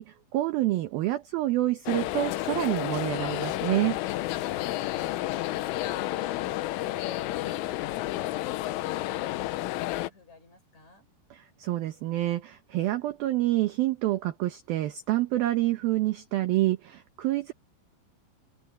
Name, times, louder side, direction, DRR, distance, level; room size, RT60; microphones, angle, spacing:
voice 1, 0.0-4.0 11.6-17.5, right 16 dB, 80° right, 2.1 m, -27 dB
sound 1, 1.9-10.1, left 16 dB, 90° left, 3.5 m, -31 dB
voice 2, 4.6-4.7, left 2 dB, 35° left, 7.6 m, -57 dB
omnidirectional pair, 5.7 m